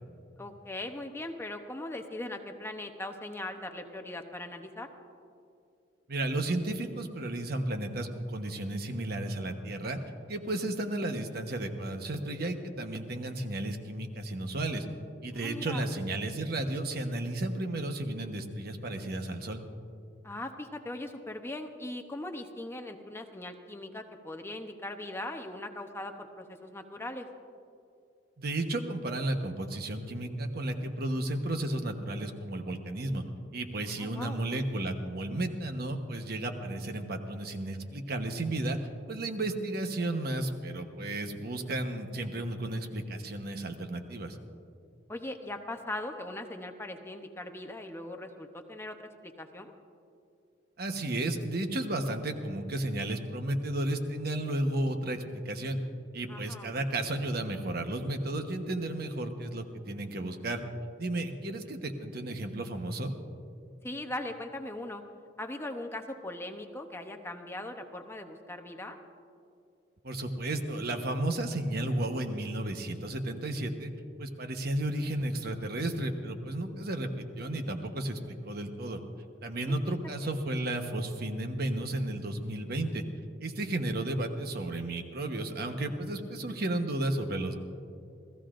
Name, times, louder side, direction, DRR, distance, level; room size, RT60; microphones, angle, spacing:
voice 1, 0.4-4.9 15.3-15.8 20.2-27.3 33.8-34.4 45.1-49.0 49.2-49.7 56.3-56.7 63.8-65.0 65.4-69.0 79.6-79.8 80.2-80.3, left 1 dB, 15° left, 5 dB, 0.8 m, -40 dB
voice 2, 6.1-10.0 10.3-14.9 15.2-19.6 28.4-33.2 33.5-38.8 39.1-44.4 50.8-55.8 56.1-60.6 61.0-63.2 70.0-73.9 74.2-79.0 79.4-83.0 83.4-87.5, right 1 dB, 60° right, 6 dB, 1.1 m, -33 dB
28.0 x 16.0 x 2.6 m, 2.5 s
head